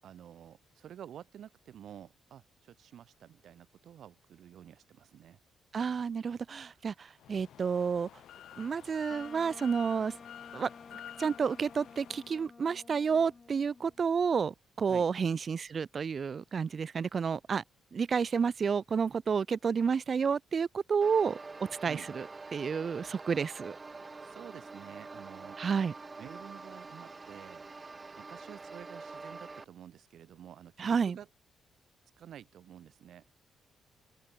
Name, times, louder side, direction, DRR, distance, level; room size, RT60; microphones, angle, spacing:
voice 1, 0.0-5.4 6.7-6.8 14.8-15.1 21.8-22.1 24.2-25.6 26.2-27.7 28.1-31.3 32.2-33.2, right 10 dB, 60° right, 7.5 m, -50 dB
voice 2, 5.7-8.1 8.6-10.1 10.5-10.7 11.2-17.6 17.9-21.4 21.8-22.3 22.5-23.8 25.6-25.9 30.8-31.2, right 6 dB, 35° right, 0.4 m, -30 dB
sound 1, 7.2-12.4, left 11 dB, 70° left, 3.1 m, -50 dB
Wind instrument woodwind instrument, 9.1-14.1, left 4 dB, 25° left, 5.2 m, -52 dB
sound 2, 21.0-29.6, right 3 dB, 20° right, 1.7 m, -46 dB
cardioid pair, 145°, 0 cm